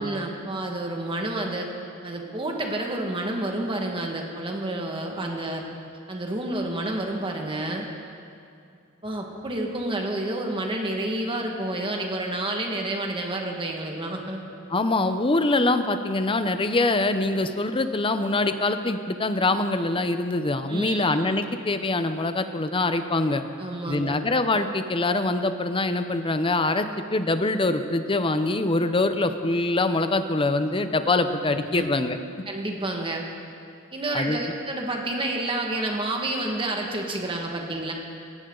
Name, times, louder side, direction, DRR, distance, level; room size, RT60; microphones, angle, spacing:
voice 1, 0.0-1.7 2.0-5.6 6.1-7.9 9.0-14.4 20.7-21.0 23.6-24.2 31.5-31.9 32.4-33.2 33.9-37.9, right 1 dB, 25° right, 1 dB, 1.8 m, -29 dB
voice 2, 14.7-23.4 23.9-32.2 34.1-34.4, left 2 dB, 25° left, 9 dB, 0.7 m, -24 dB
18.0 x 16.5 x 3.9 m, 2.4 s
head